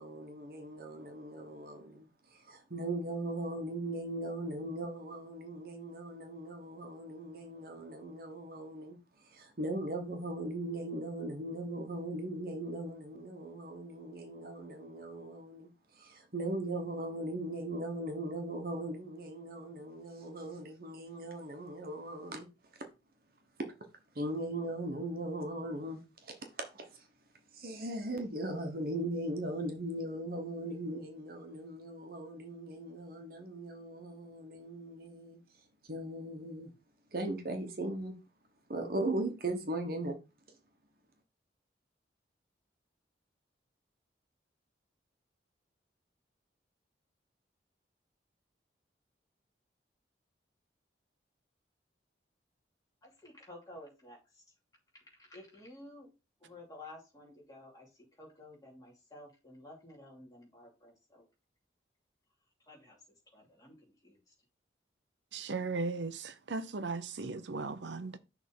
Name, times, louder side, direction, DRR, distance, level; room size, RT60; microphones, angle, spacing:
voice 1, 0.0-9.0 9.2-15.7 15.9-22.5 24.1-27.1 27.5-35.4 35.8-36.7 37.1-38.1 38.7-40.2, right 1 dB, 55° right, 1.2 m, -39 dB
voice 2, 53.0-54.4 55.0-56.1 56.4-61.3 62.7-63.0 63.3-63.8 64.0-64.3, left 1 dB, 20° left, 2.6 m, -53 dB
voice 3, 65.3-68.2, right 3 dB, 75° right, 0.7 m, -37 dB
6.3 x 3.6 x 5.4 m
head